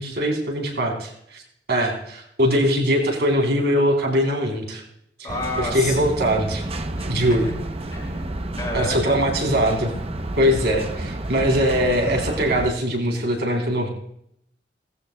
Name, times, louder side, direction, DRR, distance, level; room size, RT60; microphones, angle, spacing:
voice 1, 0.0-1.4 1.7-4.8 5.6-6.6 7.0-7.5 8.7-9.9 10.4-13.9, equal, 75° right, 1 dB, 3.6 m, -21 dB
voice 2, 5.2-6.0 7.0-7.1 7.9-9.3, left 1 dB, 25° left, -2 dB, 5.7 m, -30 dB
sound 1, 5.3-12.7, right 1 dB, 35° right, 0.8 m, -30 dB
18.0 x 15.0 x 2.3 m, 0.71 s
head